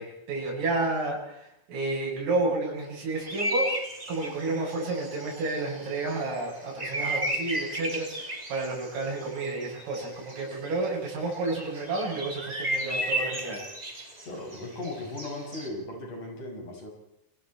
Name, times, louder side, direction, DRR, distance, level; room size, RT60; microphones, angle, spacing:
voice 1, 0.0-3.7 4.1-13.6, right 2 dB, 80° right, -3 dB, 10.5 m, -31 dB
sound 1, 3.2-10.8 11.1-15.7, right 1 dB, 10° right, 2.3 m, -34 dB
voice 2, 14.3-16.9, left 2 dB, 40° left, 0 dB, 8.1 m, -37 dB
29.0 x 23.0 x 4.5 m, 0.80 s
omnidirectional pair, 5.7 m